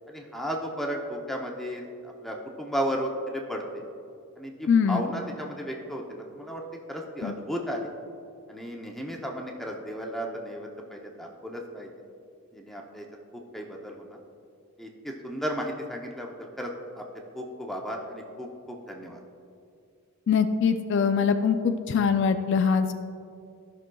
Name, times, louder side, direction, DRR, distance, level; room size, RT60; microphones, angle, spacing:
voice 1, 0.1-3.8 4.4-6.6 6.9-7.9 8.5-11.9 12.5-13.1 13.5-14.2 14.8-16.7 17.0-17.1 17.3-19.2, equal, ahead, 0 dB, 0.6 m, -34 dB
voice 2, 4.7-5.0 7.2-7.4 20.3-22.9, left 6 dB, 55° left, 8 dB, 0.4 m, -23 dB
15.5 x 6.1 x 2.3 m, 2.5 s
head